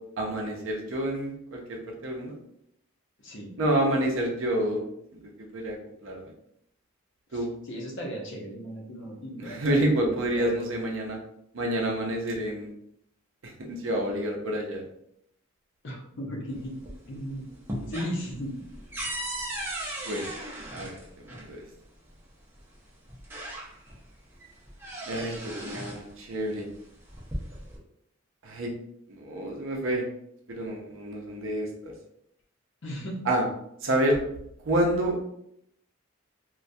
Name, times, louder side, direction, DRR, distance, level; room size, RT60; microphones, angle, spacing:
voice 1, 0.2-2.4 3.6-4.8 5.5-5.8 6.0-6.3 7.3-7.5 9.4-11.2 11.5-12.7 13.4-14.8 20.0-20.3 20.7-21.0 21.3-21.6 25.1-26.7 28.4-28.7 29.1-30.0 30.5-31.9 33.3-33.4 33.8-34.2 34.6-35.2, right 1 dB, 60° right, 0 dB, 0.5 m, -28 dB
voice 2, 3.2-3.5 7.3-10.7 15.8-16.8 17.1-17.5 17.9-18.6 32.8-33.2, equal, 60° left, -1 dB, 0.6 m, -36 dB
sound 1, 16.5-17.2 17.5-21.5 22.6-22.7 23.1-24.0 24.4-26.1 27.0-27.8, right 1 dB, 10° right, 0.4 m, -37 dB
2.2 x 2.2 x 2.6 m, 0.74 s
head